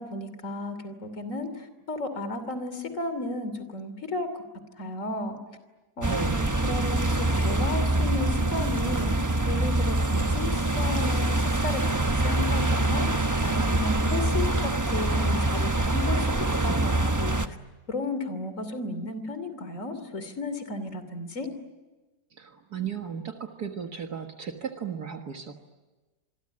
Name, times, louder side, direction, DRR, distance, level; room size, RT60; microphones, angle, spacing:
voice 1, 0.0-4.4 4.8-5.4 6.0-6.3 6.6-9.1 9.5-17.6 17.9-21.5, left 2 dB, 50° left, 11 dB, 3.2 m, -34 dB
sound 1, 6.0-17.5, right 2 dB, 15° right, 0.8 m, -25 dB
voice 2, 6.1-6.5 22.3-25.5, right 7 dB, 70° right, 4 dB, 2.1 m, -35 dB
26.5 x 22.5 x 9.8 m, 1.2 s
omnidirectional pair, 1.8 m